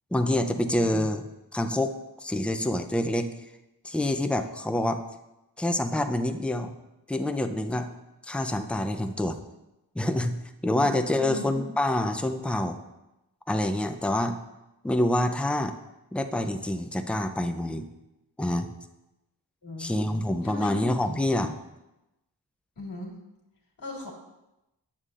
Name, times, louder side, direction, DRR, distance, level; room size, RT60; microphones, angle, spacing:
voice 1, 0.1-1.2 1.5-1.9 2.2-3.3 3.8-5.0 5.6-6.7 7.1-7.9 8.3-9.4 10.0-10.3 10.6-12.8 13.5-14.4 14.8-15.7 16.1-17.8 18.4-18.7 19.8-21.5, left 1 dB, 5° left, 7 dB, 0.5 m, -26 dB
voice 2, 11.2-11.5 19.6-19.9 20.4-21.2 22.8-23.1 23.8-24.1, left 1 dB, 50° left, -1 dB, 2.0 m, -38 dB
8.3 x 7.3 x 2.5 m, 0.95 s
cardioid pair, 50°, 44 cm